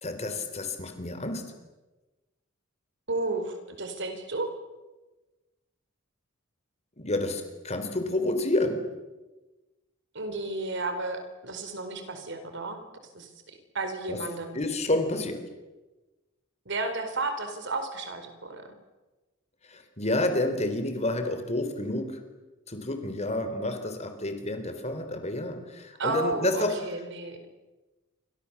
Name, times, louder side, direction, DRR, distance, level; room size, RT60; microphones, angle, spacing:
voice 1, 0.0-1.4 7.0-8.8 14.1-14.2 14.5-15.4 19.7-22.1 22.7-26.7, left 1 dB, 35° left, 7 dB, 3.9 m, -29 dB
voice 2, 3.1-4.5 10.1-12.8 13.1-13.3 13.7-14.6 16.7-18.7 26.0-27.5, right 2 dB, 60° right, 7 dB, 4.6 m, -32 dB
28.5 x 26.0 x 7.3 m, 1.2 s
head